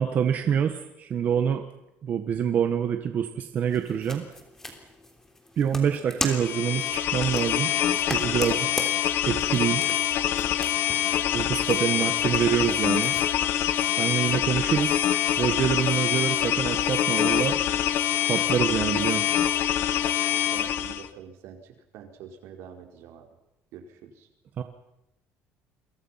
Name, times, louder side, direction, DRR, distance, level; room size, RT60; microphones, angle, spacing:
voice 1, 0.0-1.6 2.0-4.2 5.6-7.7 8.1-8.7 9.2-9.8 11.3-13.1 14.0-14.9 15.4-17.6 18.3-19.2 24.6-24.7, right 8 dB, 40° right, 6 dB, 1.5 m, -26 dB
sound 1, 3.7-13.3, left 1 dB, 10° left, 3.4 m, -39 dB
sound 2, 6.3-21.1, left 11 dB, 55° left, 1.3 m, -25 dB
voice 2, 20.5-23.3 23.7-24.3, right 8 dB, 70° right, 4 dB, 4.5 m, -45 dB
29.5 x 23.0 x 5.8 m, 0.87 s
cardioid pair, 165°, 5 cm